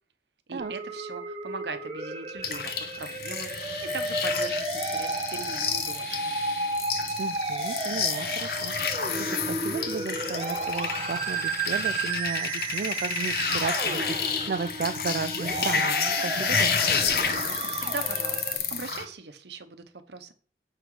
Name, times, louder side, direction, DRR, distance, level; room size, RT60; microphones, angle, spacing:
voice 1, 0.5-3.5 3.9-6.3 17.2-20.3, right 4 dB, 80° right, 9 dB, 1.0 m, -40 dB
Musical instrument, 0.6-18.6, right 3 dB, 30° right, 1.2 m, -33 dB
sound 1, 2.4-19.0, left 6 dB, 60° left, 0.9 m, -30 dB
voice 2, 7.2-16.0 16.2-17.0, right 5 dB, 55° right, 8 dB, 0.3 m, -34 dB
6.7 x 6.0 x 4.8 m, 0.42 s
head